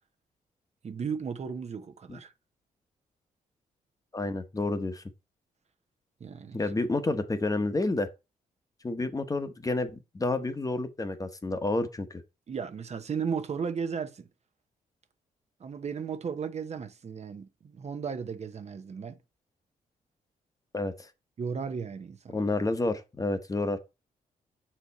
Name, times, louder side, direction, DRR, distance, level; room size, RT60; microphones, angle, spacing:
voice 1, 0.8-2.3 6.2-6.6 12.5-14.3 15.6-19.2 21.4-22.4, right 6 dB, 45° right, 1.0 m, -35 dB
voice 2, 4.1-5.0 6.5-8.1 8.8-12.2 20.7-21.1 22.3-23.8, left 2 dB, 25° left, 1.0 m, -30 dB
6.5 x 4.4 x 4.1 m
cardioid pair, 80°, 15 cm